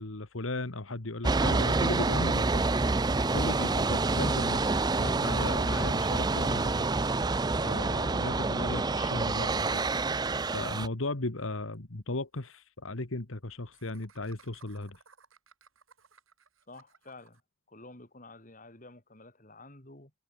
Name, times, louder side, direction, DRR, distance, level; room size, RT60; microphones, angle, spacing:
voice 1, 0.0-2.6 3.1-6.9 7.6-9.8 10.5-15.0, left 2 dB, 80° left, 1.8 m, -36 dB
sound 1, 1.2-10.9, right 3 dB, 20° right, 0.5 m, -27 dB
Laughter, 11.7-11.8 12.1-12.2 12.4-12.5 13.7-17.4, right 5 dB, 85° right, 7.9 m, -60 dB
voice 2, 16.7-17.4 17.7-20.1, left 2 dB, 40° left, 3.4 m, -50 dB
head